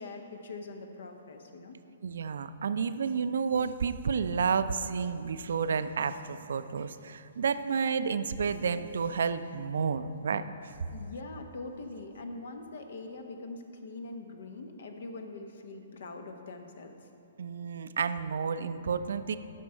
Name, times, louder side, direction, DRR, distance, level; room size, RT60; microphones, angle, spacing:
voice 1, 0.0-1.8 10.9-17.1, left 3 dB, 60° left, 6 dB, 0.9 m, -43 dB
voice 2, 2.0-10.4 17.4-19.4, right 6 dB, 65° right, 12 dB, 0.4 m, -30 dB
13.0 x 5.3 x 4.5 m, 2.8 s
figure-of-eight pair, 125°, 0 cm